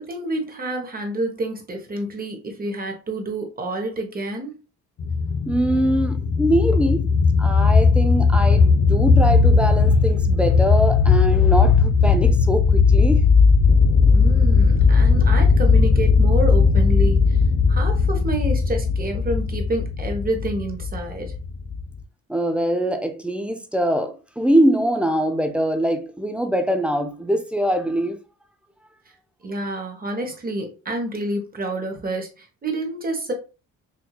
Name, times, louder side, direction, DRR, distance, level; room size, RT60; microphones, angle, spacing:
voice 1, 0.0-4.6 14.1-17.4 17.7-21.3 29.4-33.3, right 2 dB, 30° right, 1.0 m, -28 dB
sound 1, 5.0-22.0, left 5 dB, 50° left, 0.6 m, -17 dB
voice 2, 5.5-7.1 7.4-13.2 22.3-28.2, equal, 5° right, 0.5 m, -23 dB
4.4 x 2.7 x 2.3 m
cardioid pair, 90°, 30 cm